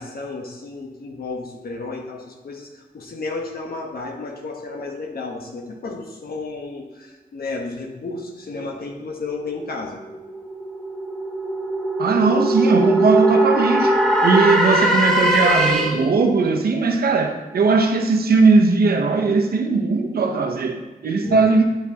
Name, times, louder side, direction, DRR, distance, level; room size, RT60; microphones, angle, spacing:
voice 1, 0.0-10.0 21.2-21.4, left 3 dB, 80° left, 2 dB, 1.1 m, -32 dB
sound 1, 10.0-16.2, right 1 dB, 5° left, 2.1 m, -20 dB
voice 2, 12.0-21.7, right 4 dB, 85° right, 3 dB, 0.7 m, -18 dB
9.9 x 6.1 x 2.8 m, 1.1 s
cardioid pair, 45°, 15 cm